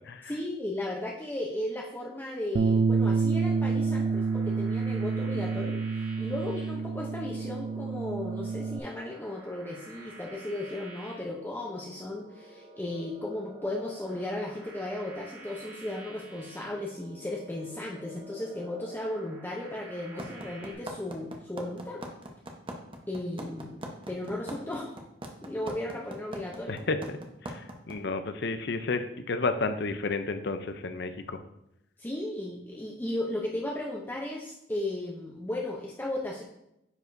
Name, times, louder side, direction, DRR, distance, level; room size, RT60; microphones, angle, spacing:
voice 1, 0.3-22.0 23.1-25.0 25.4-26.8 32.0-36.4, left 1 dB, 10° left, -2 dB, 0.7 m, -35 dB
Bass guitar, 2.5-8.8, right 4 dB, 50° right, 0.3 m, -28 dB
sound 1, 3.3-20.7, right 2 dB, 10° right, 1.8 m, -50 dB
sound 2, 20.2-27.9, right 1 dB, 30° right, 0.9 m, -39 dB
voice 2, 26.7-27.2 27.4-31.4, left 3 dB, 65° left, 9 dB, 0.6 m, -31 dB
9.5 x 4.8 x 2.6 m, 0.83 s
head